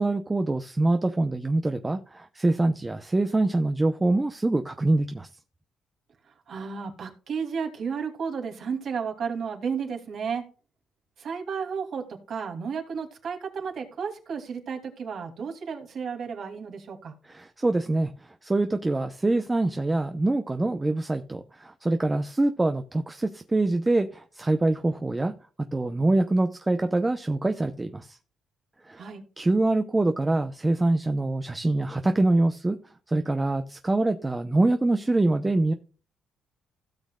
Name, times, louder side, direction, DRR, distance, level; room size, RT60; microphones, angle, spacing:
voice 1, 0.0-5.3 17.3-18.1 18.4-25.3 25.7-28.2 28.9-29.0 29.4-32.8 33.1-35.7, right 2 dB, 20° right, 7 dB, 0.8 m, -24 dB
voice 2, 6.5-10.4 11.2-17.1 29.0-29.2, right 6 dB, 60° right, 3 dB, 2.7 m, -33 dB
16.5 x 6.2 x 2.4 m, 0.37 s
cardioid pair, 90°, 0 cm